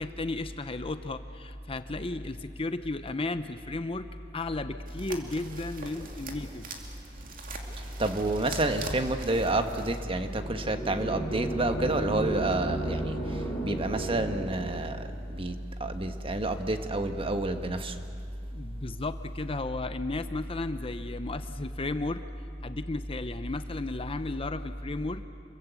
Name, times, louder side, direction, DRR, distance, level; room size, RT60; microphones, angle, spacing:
voice 1, 0.0-6.7 18.5-22.2 22.6-25.2, left 2 dB, 30° left, 10 dB, 0.7 m, -34 dB
sound 1, 4.9-10.0, right 3 dB, 45° right, 2.6 m, -42 dB
voice 2, 7.8-18.0, right 2 dB, 30° right, 7 dB, 1.4 m, -29 dB
sound 2, 10.2-15.1, right 1 dB, 10° left, 5.2 m, -34 dB
28.0 x 22.5 x 8.3 m, 2.4 s
head